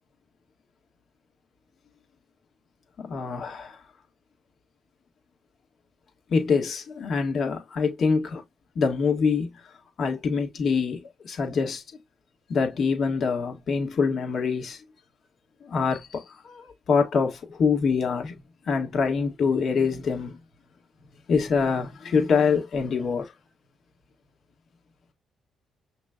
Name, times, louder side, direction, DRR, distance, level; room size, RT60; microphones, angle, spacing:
voice 1, 3.0-3.8 6.3-8.4 8.8-9.5 10.0-11.8 12.5-14.8 15.7-18.4 18.7-20.4 21.3-23.3, left 5 dB, 60° left, 1.9 m, -25 dB
6.0 x 3.1 x 2.5 m
cardioid pair, 90°, 0 cm